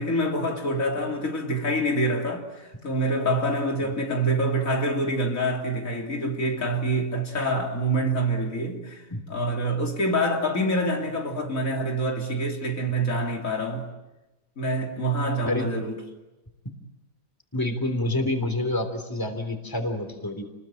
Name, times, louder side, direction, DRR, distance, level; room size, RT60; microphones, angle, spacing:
voice 1, 0.0-9.0 9.3-13.9 14.6-16.0, right 1 dB, 75° left, 3.5 m, -26 dB
voice 2, 17.5-20.4, left 1 dB, 15° left, 3.4 m, -27 dB
30.0 x 21.0 x 9.0 m
omnidirectional pair, 1.4 m